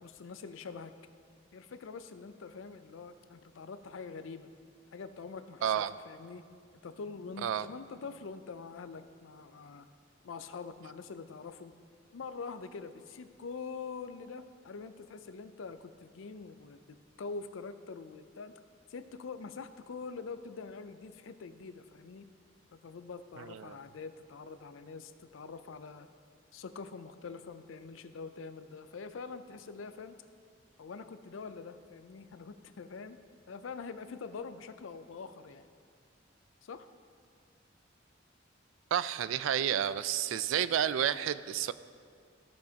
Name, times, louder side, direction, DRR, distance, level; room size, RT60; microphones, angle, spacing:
voice 1, 0.0-0.9 1.5-4.5 4.9-6.4 6.8-9.9 10.2-11.7 12.1-18.5 18.9-22.2 22.7-26.1 26.5-30.1 30.8-33.2 33.5-35.7 36.6-36.9, left 4 dB, 90° left, 11 dB, 0.5 m, -44 dB
voice 2, 5.6-5.9 7.4-7.7 23.4-23.8 38.9-41.7, right 9 dB, 80° right, 15 dB, 0.3 m, -30 dB
15.0 x 6.3 x 2.8 m, 2.2 s
head